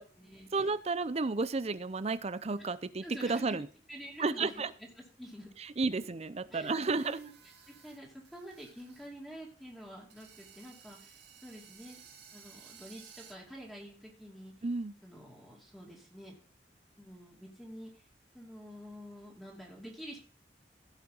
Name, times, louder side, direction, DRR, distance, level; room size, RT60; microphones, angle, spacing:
voice 1, 0.0-0.7 2.6-2.7 3.0-5.5 6.5-11.2 11.4-12.0 12.3-14.5 15.0-16.3 16.9-18.0 18.3-20.2, equal, ahead, -3 dB, 2.7 m, -48 dB
voice 2, 0.5-3.7 4.2-4.7 5.8-7.2 14.6-14.9, right 3 dB, 35° right, 15 dB, 0.6 m, -32 dB
sound 1, 6.6-9.1 9.4-9.5 10.1-13.3, right 7 dB, 65° right, 2.1 m, -56 dB
16.0 x 5.8 x 4.0 m, 0.41 s
head